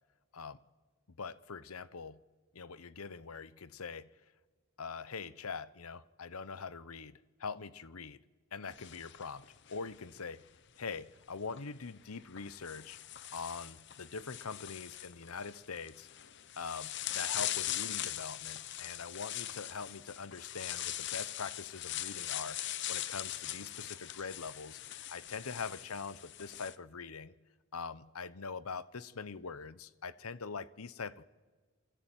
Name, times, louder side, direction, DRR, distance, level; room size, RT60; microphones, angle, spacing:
voice 1, 1.2-2.2 2.5-4.1 4.8-8.2 8.5-10.4 10.8-13.0 13.3-16.1 16.6-22.6 22.9-27.3 27.7-31.2, left 5 dB, 80° left, 0.9 m, -43 dB
sound 1, 8.7-10.2 11.4-11.6 12.4-26.7, left 13 dB, 50° left, 0.8 m, -41 dB
28.5 x 23.0 x 9.1 m
head